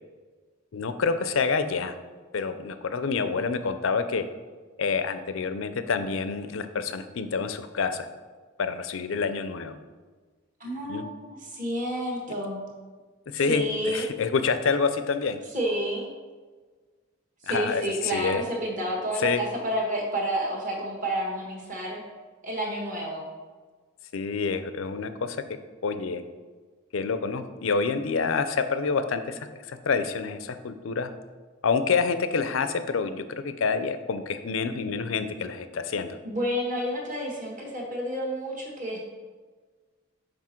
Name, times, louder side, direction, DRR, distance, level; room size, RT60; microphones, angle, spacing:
voice 1, 0.7-1.9 2.3-4.2 4.8-8.1 8.6-9.8 10.8-11.0 13.3-15.4 17.5-18.4 19.2-19.4 24.1-26.2 26.9-31.1 31.6-36.2, left 5 dB, 75° left, 10 dB, 0.5 m, -27 dB
voice 2, 10.6-12.6 13.3-14.1 15.5-16.1 17.4-22.0 22.4-23.2 36.2-39.0, equal, 40° right, -1 dB, 1.5 m, -30 dB
6.0 x 5.0 x 4.4 m, 1.4 s
head